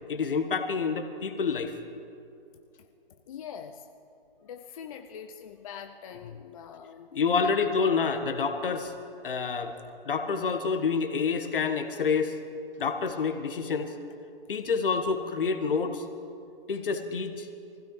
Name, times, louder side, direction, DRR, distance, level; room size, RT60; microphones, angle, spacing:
voice 1, 0.1-1.7 7.1-8.9 9.2-9.7 10.0-12.4 12.8-13.9 14.5-16.0 16.7-17.5, left 5 dB, 60° left, 6 dB, 1.5 m, -28 dB
voice 2, 3.3-3.9 4.4-7.1 7.4-7.7, left 8 dB, 35° left, 6 dB, 0.6 m, -43 dB
23.5 x 16.0 x 3.2 m, 2.5 s
figure-of-eight pair, 135°, 30 cm